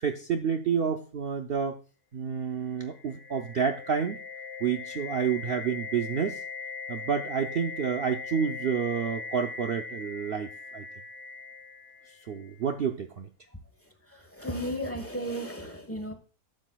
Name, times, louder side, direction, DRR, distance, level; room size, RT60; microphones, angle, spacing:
voice 1, 0.0-1.8 2.1-4.2 4.6-6.4 6.9-10.8 12.3-13.3, right 7 dB, 70° right, 0.5 m, -29 dB
sound 1, 2.7-12.6, left 5 dB, 30° left, 1.3 m, -40 dB
voice 2, 14.1-16.1, equal, 10° left, 0.9 m, -34 dB
12.0 x 7.7 x 2.2 m
omnidirectional pair, 1.7 m